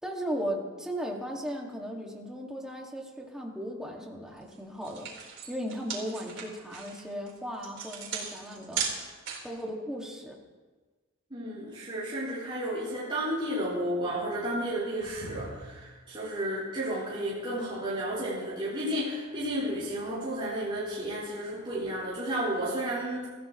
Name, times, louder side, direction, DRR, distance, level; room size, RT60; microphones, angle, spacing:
voice 1, 0.0-5.1 5.5-8.8 9.4-10.4, equal, 5° right, -1 dB, 2.2 m, -36 dB
sound 1, 4.4-4.5 4.8-9.6, right 6 dB, 60° right, 4.5 m, -36 dB
voice 2, 11.3-23.3, right 1 dB, 25° right, -10 dB, 4.8 m, -32 dB
sound 2, 12.4-13.2 14.6-15.8, equal, 90° left, 6.4 m, -47 dB
26.0 x 15.0 x 3.2 m, 1.3 s
head